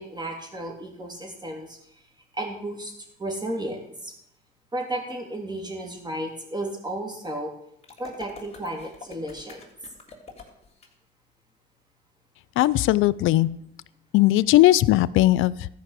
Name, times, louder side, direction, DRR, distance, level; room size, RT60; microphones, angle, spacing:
voice 1, 0.0-1.8 2.3-2.9 3.2-4.1 4.7-7.5 8.0-9.6, right 1 dB, 20° right, 1 dB, 3.2 m, -33 dB
sound 1, 7.8-10.9, left 4 dB, 30° left, 3.4 m, -45 dB
voice 2, 12.6-13.5 14.1-15.7, left 16 dB, 85° left, 20 dB, 0.5 m, -18 dB
14.0 x 5.4 x 8.3 m, 0.75 s
cardioid pair, 90°, 20 cm